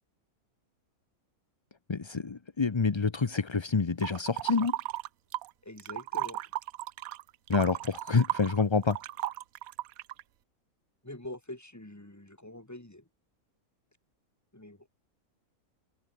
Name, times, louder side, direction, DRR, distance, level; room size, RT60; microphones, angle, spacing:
voice 1, 1.9-4.7 7.5-9.0, left 4 dB, 30° left, 0.5 m, -27 dB
sound 1, 4.0-5.5 5.8-10.2, right 14 dB, 75° right, 1.0 m, -35 dB
voice 2, 5.6-6.4 11.0-13.0 14.5-14.9, left 1 dB, 10° left, 2.2 m, -44 dB
open air
omnidirectional pair, 1.5 m